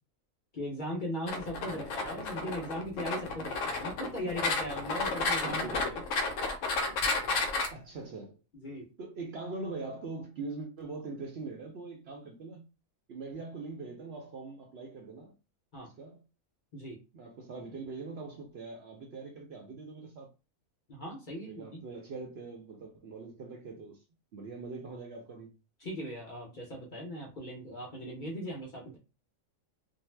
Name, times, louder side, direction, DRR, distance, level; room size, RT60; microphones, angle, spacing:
voice 1, 0.5-6.0 8.5-8.9 15.7-15.9 16.7-17.0 20.9-21.8 25.8-29.0, equal, 45° left, 0.7 m, -39 dB
sound 1, 1.3-7.7, left 3 dB, 70° left, 0.9 m, -32 dB
voice 2, 1.6-2.6 4.2-4.3 5.3-5.9 7.7-8.4 9.0-12.7 13.1-15.3 15.8-16.2 17.1-20.3 21.4-24.0 24.3-25.5, right 3 dB, 65° right, 0.7 m, -42 dB
2.5 x 2.0 x 3.1 m
omnidirectional pair, 1.4 m